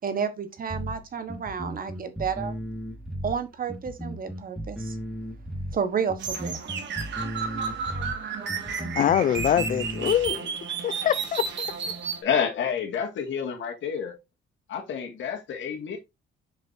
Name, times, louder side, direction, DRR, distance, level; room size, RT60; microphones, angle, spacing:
voice 1, 0.0-2.5 3.2-5.0 5.7-6.7, right 6 dB, 45° right, 1.3 m, -31 dB
sound 1, 0.7-10.3, equal, ahead, 2.0 m, -35 dB
sound 2, 6.2-12.2, right 6 dB, 65° right, 1.8 m, -32 dB
voice 2, 9.0-12.0, left 10 dB, 45° left, 0.4 m, -25 dB
voice 3, 12.2-14.1 14.7-16.0, left 7 dB, 70° left, 2.2 m, -29 dB
7.0 x 5.2 x 2.7 m
cardioid pair, 90°, 20 cm